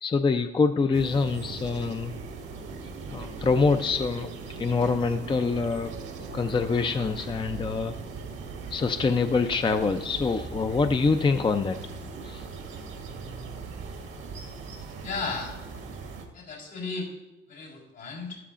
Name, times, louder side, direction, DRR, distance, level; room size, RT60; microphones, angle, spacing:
voice 1, 0.0-2.1 3.1-4.3 4.6-5.9 6.3-7.9 8.7-11.8 12.2-12.5, left 4 dB, 25° left, 8 dB, 0.5 m, -25 dB
sound 1, 0.9-16.3, right 4 dB, 90° right, 1.7 m, -39 dB
voice 2, 15.0-15.6 16.3-17.1 17.5-18.4, left 4 dB, 70° left, -3 dB, 4.1 m, -34 dB
12.5 x 12.0 x 2.5 m, 1.1 s
cardioid pair, 90°, 20 cm